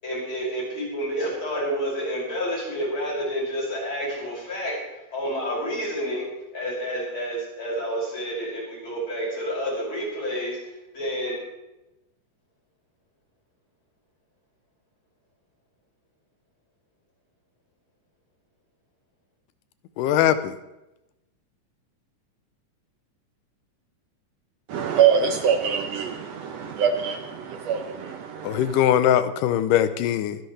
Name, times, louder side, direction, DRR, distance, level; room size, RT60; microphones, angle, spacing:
voice 1, 0.0-4.7 5.1-6.3 6.5-10.6 10.9-11.4, equal, 35° left, -5 dB, 7.0 m, -29 dB
voice 2, 20.0-20.5 28.4-30.4, left 10 dB, 90° left, 12 dB, 2.4 m, -21 dB
voice 3, 24.7-28.8, right 7 dB, 70° right, 6 dB, 1.7 m, -24 dB
25.0 x 11.0 x 3.3 m, 0.95 s
omnidirectional pair, 3.7 m